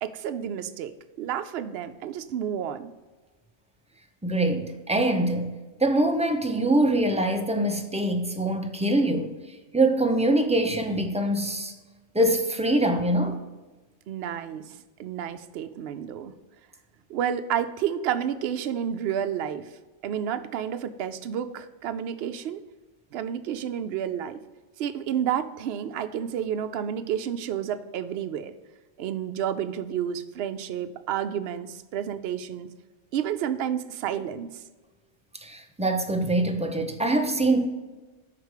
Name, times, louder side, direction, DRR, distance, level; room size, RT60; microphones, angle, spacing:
voice 1, 0.0-2.9 14.1-16.3 17.1-19.7 20.0-22.6 23.1-24.4 24.8-28.5 29.0-32.7 33.1-34.5, right 9 dB, 65° right, 0.7 m, -30 dB
voice 2, 4.2-5.5 5.8-9.4 9.7-11.7 12.1-13.4 35.4-37.7, right 1 dB, 10° right, 0.3 m, -24 dB
5.8 x 4.7 x 6.4 m
omnidirectional pair, 1.2 m